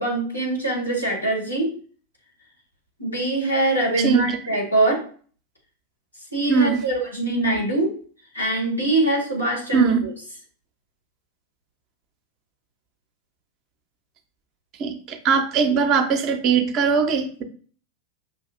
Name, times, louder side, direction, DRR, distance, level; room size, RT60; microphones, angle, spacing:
voice 1, 0.0-1.7 3.0-5.0 6.3-7.9 8.3-10.1, right 2 dB, 90° left, -5 dB, 2.0 m, -23 dB
voice 2, 6.5-6.8 9.7-10.0 14.8-17.4, right 5 dB, 35° right, 5 dB, 0.8 m, -20 dB
5.9 x 2.8 x 2.4 m, 0.44 s
figure-of-eight pair, 90°, 0 cm